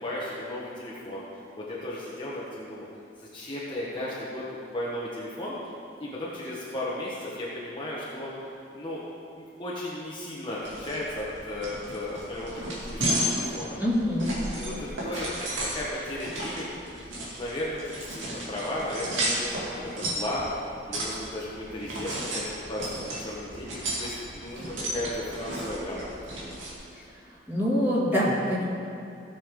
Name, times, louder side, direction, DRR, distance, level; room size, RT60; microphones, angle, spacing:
voice 1, 0.0-1.2 1.6-2.8 3.2-4.4 4.7-5.5 6.0-8.3 8.7-9.0 9.4-13.8 14.5-15.5 15.7-16.7 17.3-19.6 20.1-20.5 20.9-22.4 22.7-26.1 26.3-26.6, left 1 dB, 25° left, -7 dB, 1.4 m, -35 dB
sound 1, 10.6-26.7, right 1 dB, 90° right, 2.6 m, -34 dB
voice 2, 13.8-14.4 15.1-15.2 27.5-28.6, equal, 10° right, -8 dB, 2.8 m, -25 dB
17.0 x 7.1 x 3.8 m, 2.5 s
head